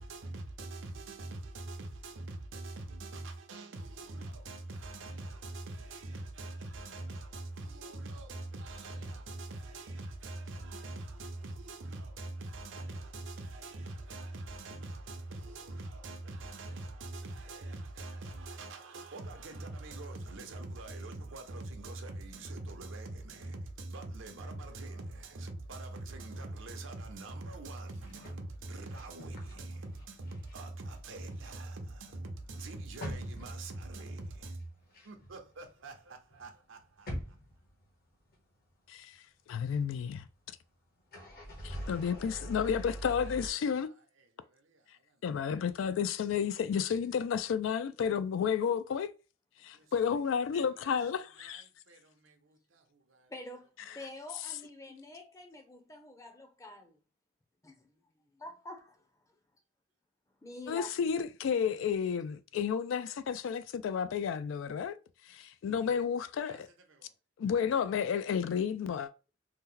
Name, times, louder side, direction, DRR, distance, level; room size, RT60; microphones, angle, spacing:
voice 1, 0.0-37.4 41.9-45.2 45.5-45.6 49.7-50.2 50.5-51.0 51.4-53.3 66.4-66.6 66.9-67.1, right 2 dB, 75° right, 0.7 m, -43 dB
sound 1, 27.9-30.6 30.8-36.0 36.3-38.4 38.7-38.8 41.0-43.5, equal, 50° left, 0.9 m, -45 dB
voice 2, 39.5-40.2 41.6-43.9 45.2-49.1 49.6-51.6 60.7-65.0 65.3-66.7 67.4-69.1, left 7 dB, 75° left, 0.3 m, -31 dB
voice 3, 53.3-57.0 57.6-59.4 60.3-61.2, left 2 dB, 15° left, 0.6 m, -48 dB
2.8 x 2.1 x 3.7 m
head